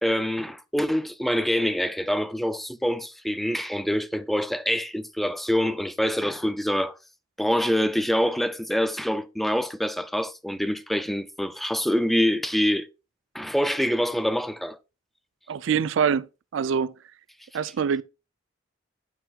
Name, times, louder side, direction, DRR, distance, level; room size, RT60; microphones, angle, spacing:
voice 1, 0.0-6.9 7.4-12.9 13.3-14.8, equal, ahead, 0.4 m, -25 dB
voice 2, 15.5-16.3 16.5-17.0 17.5-18.0, right 7 dB, 70° right, 0.4 m, -24 dB
12.5 x 4.6 x 2.3 m
head